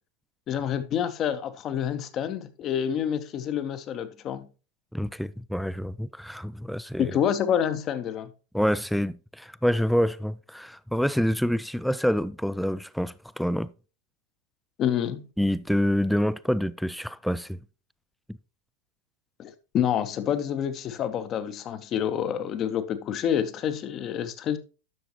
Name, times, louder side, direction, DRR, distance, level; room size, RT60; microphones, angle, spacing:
voice 1, 0.5-4.5 7.0-8.3 14.8-15.2 19.4-24.6, left 9 dB, 30° left, 0.8 m, -28 dB
voice 2, 4.9-7.1 8.5-13.7 15.4-17.6, equal, ahead, 0.3 m, -27 dB
11.0 x 6.8 x 3.0 m
figure-of-eight pair, 90°, 0 cm